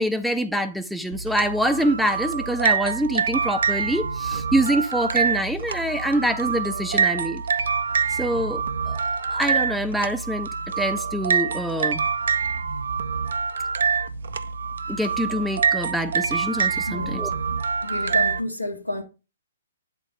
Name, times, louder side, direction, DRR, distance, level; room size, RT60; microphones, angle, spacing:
voice 1, 0.0-7.4 8.2-9.0 9.3-10.5 10.8-12.0 14.9-17.3, right 1 dB, ahead, 0.5 m, -25 dB
sound 1, 1.1-18.4, right 6 dB, 60° right, 0.5 m, -25 dB
voice 2, 16.9-19.0, left 2 dB, 90° left, 1.3 m, -31 dB
8.3 x 4.0 x 3.7 m
figure-of-eight pair, 120°, 0 cm